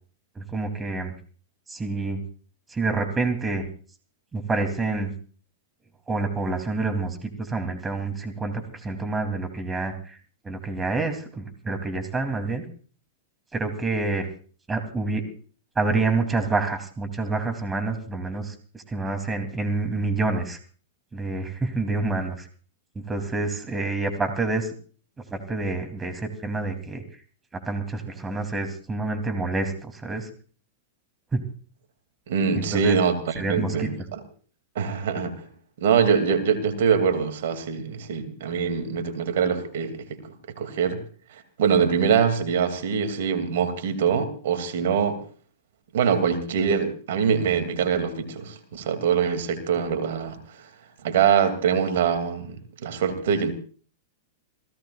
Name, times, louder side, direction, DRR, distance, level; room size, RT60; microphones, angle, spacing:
voice 1, 0.3-1.1 1.7-2.2 2.7-3.6 4.3-5.1 6.1-10.2 10.4-12.7 13.5-14.3 14.7-15.2 15.7-20.6 21.1-22.5 23.1-24.7 25.3-27.0 27.6-30.3 31.3-31.4 32.5-33.0 33.3-33.9, right 3 dB, 15° right, 3.3 m, -27 dB
voice 2, 32.3-34.2 34.7-35.5 35.8-40.2 40.6-41.0 41.3-45.2 45.9-50.7 51.0-52.6 52.8-53.5, right 7 dB, 65° right, 2.8 m, -24 dB
29.0 x 17.0 x 2.5 m
hypercardioid pair, 105°, 0 cm